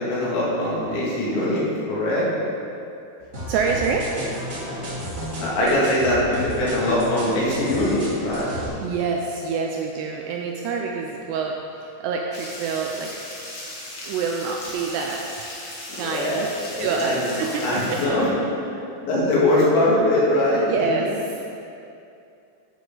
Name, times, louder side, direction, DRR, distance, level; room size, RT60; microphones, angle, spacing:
voice 1, 0.0-2.3 5.4-8.5 15.9-18.3 19.0-20.9, left 1 dB, 75° left, -6 dB, 4.3 m, -22 dB
sound 1, 3.3-8.7, equal, 25° right, 1.5 m, -32 dB
voice 2, 3.5-4.1 8.8-13.1 14.0-15.2 15.9-16.5 16.8-18.0 20.7-21.1, right 5 dB, 80° right, 1 dB, 2.5 m, -26 dB
sound 2, 12.3-18.0, left 1 dB, 55° left, 1.3 m, -37 dB
11.5 x 8.4 x 3.9 m, 2.6 s
omnidirectional pair, 5.3 m